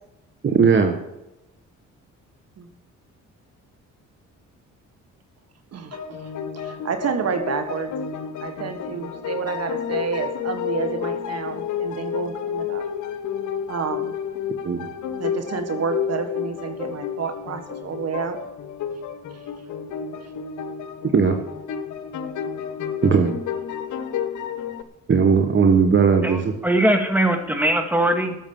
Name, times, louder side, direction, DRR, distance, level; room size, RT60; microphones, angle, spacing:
voice 1, 0.4-1.0 14.6-14.9 21.1-21.3 23.0-23.4 25.1-26.5, right 5 dB, 40° right, 5 dB, 1.6 m, -17 dB
sound 1, 5.9-24.8, left 8 dB, 75° left, 1.3 m, -31 dB
voice 2, 6.5-8.0 8.4-12.8 13.7-14.1 15.2-18.4, right 6 dB, 55° right, 8 dB, 1.8 m, -29 dB
voice 3, 26.2-28.4, right 1 dB, 5° right, 5 dB, 2.2 m, -21 dB
13.0 x 7.3 x 7.2 m, 0.92 s
cardioid pair, 90°, 30 cm